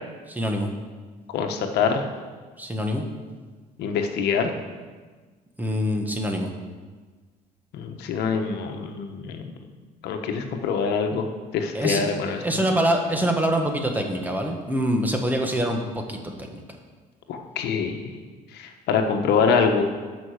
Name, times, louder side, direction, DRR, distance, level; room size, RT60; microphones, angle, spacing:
voice 1, 0.3-0.7 2.6-3.0 5.6-6.5 11.7-12.0 12.4-16.6, equal, 10° right, 3 dB, 1.4 m, -25 dB
voice 2, 1.3-2.0 3.8-4.5 7.7-9.5 10.0-11.3 11.5-12.4 17.3-18.0 18.5-19.8, left 5 dB, 80° left, 5 dB, 1.2 m, -24 dB
12.5 x 5.4 x 6.6 m, 1.4 s
cardioid pair, 110°, 17 cm